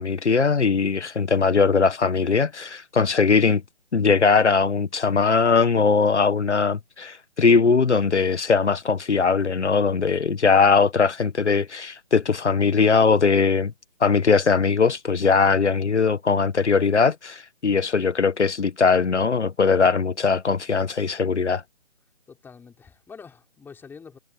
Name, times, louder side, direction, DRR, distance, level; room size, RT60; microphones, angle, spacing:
voice 1, 0.0-3.6 3.9-13.7 14.0-21.6, left 5 dB, 80° left, 1.5 m, -20 dB
voice 2, 22.3-24.2, left 5 dB, 5° left, 4.0 m, -45 dB
figure-of-eight pair, 145°, 34 cm